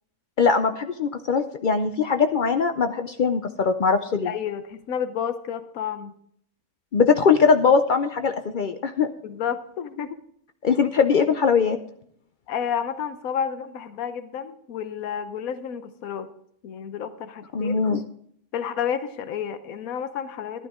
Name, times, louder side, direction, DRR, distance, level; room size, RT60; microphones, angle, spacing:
voice 1, 0.4-4.3 6.9-9.1 10.6-11.8 17.5-18.0, left 5 dB, 85° left, 8 dB, 0.4 m, -21 dB
voice 2, 4.2-6.1 9.2-10.2 12.5-16.3 16.6-17.8 18.5-20.7, left 8 dB, 70° left, 11 dB, 1.3 m, -30 dB
12.5 x 11.5 x 3.6 m, 0.67 s
omnidirectional pair, 1.6 m